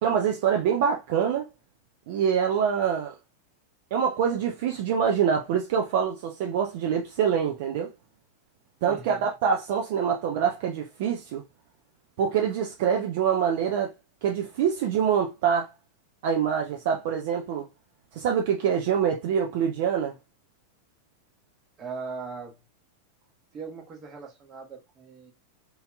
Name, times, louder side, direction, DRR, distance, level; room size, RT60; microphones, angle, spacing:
voice 1, 0.0-1.5 2.1-3.1 3.9-7.9 8.8-11.4 12.2-13.9 14.2-15.7 16.2-17.6 18.2-20.1, right 7 dB, 50° right, 0.4 m, -25 dB
voice 2, 8.9-9.3 21.8-22.6 23.5-25.3, right 4 dB, 25° right, 1.0 m, -39 dB
3.1 x 2.7 x 2.2 m
figure-of-eight pair, 90°, 0 cm